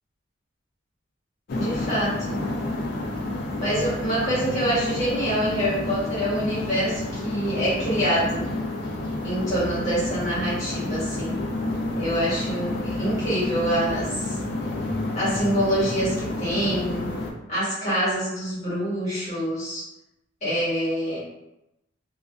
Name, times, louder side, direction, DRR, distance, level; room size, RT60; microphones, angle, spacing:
sound 1, 1.5-17.3, left 2 dB, 55° left, 0.4 m, -30 dB
voice 1, 1.5-2.4 3.6-8.5 9.2-11.4 11.9-14.4 15.1-17.1 17.5-19.9 20.4-21.2, equal, 40° left, -9 dB, 1.4 m, -26 dB
2.4 x 2.4 x 2.3 m, 0.90 s
head